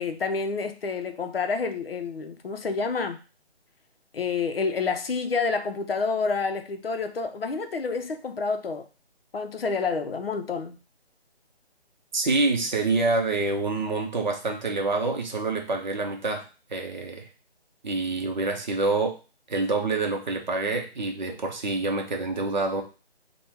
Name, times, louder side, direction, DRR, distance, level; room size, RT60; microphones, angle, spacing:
voice 1, 0.0-3.2 4.1-8.9 9.3-10.8, left 4 dB, 60° left, 0.6 m, -28 dB
voice 2, 12.1-17.3 17.8-19.2 19.5-22.8, right 3 dB, 45° right, 0.8 m, -27 dB
3.4 x 2.2 x 4.4 m
figure-of-eight pair, 155°, 33 cm